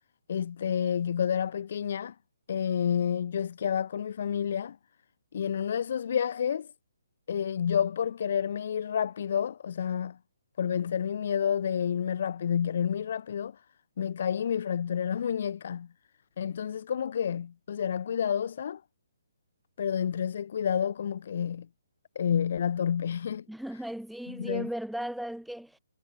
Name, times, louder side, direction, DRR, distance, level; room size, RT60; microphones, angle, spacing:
voice 1, 0.3-2.1 2.5-4.8 5.3-6.7 7.3-10.2 10.6-13.6 14.0-15.9 16.4-18.8 19.8-21.7 22.1-23.4 24.3-24.7, left 8 dB, 45° left, 2.6 m, -29 dB
voice 2, 23.5-25.8, right 1 dB, ahead, 3.5 m, -36 dB
hypercardioid pair, 170°, 0 cm